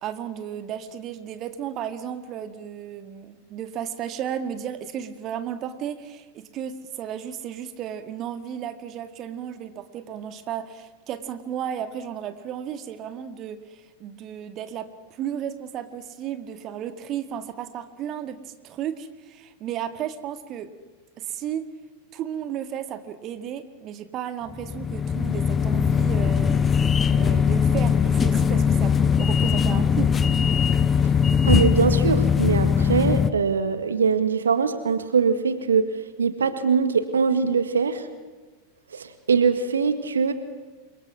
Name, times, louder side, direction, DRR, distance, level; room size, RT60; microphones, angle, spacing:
voice 1, 0.0-20.7 21.2-21.7 22.1-26.6 27.1-30.1, right 9 dB, 35° right, 9 dB, 2.0 m, -34 dB
sound 1, 24.5-33.3, left 7 dB, 20° left, 1.1 m, -20 dB
voice 2, 31.5-38.1 38.9-40.3, right 5 dB, 70° right, 10 dB, 1.8 m, -22 dB
28.5 x 24.0 x 6.3 m, 1.3 s
figure-of-eight pair, 90°, 0 cm